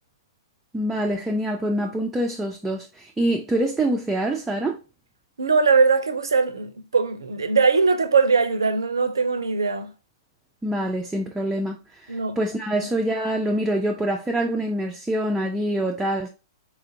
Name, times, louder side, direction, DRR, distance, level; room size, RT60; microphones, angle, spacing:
voice 1, 0.7-4.8 10.6-16.3, right 1 dB, 5° right, 0.4 m, -25 dB
voice 2, 5.4-9.9 12.1-12.4, right 4 dB, 70° right, 0.5 m, -21 dB
4.1 x 2.4 x 2.6 m
figure-of-eight pair, 105°, 2 cm